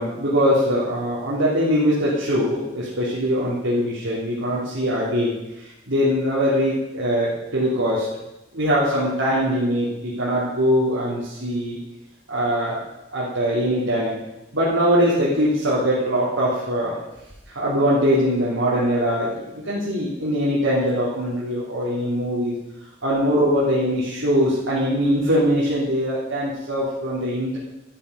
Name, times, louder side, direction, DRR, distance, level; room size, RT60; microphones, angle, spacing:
voice 1, 0.0-5.3 5.9-8.1 8.5-11.8 12.3-12.8 13.1-14.1 14.5-16.9 17.5-22.5 23.0-27.6, equal, 85° right, -9 dB, 3.2 m, -22 dB
13.0 x 9.1 x 5.2 m, 0.94 s
head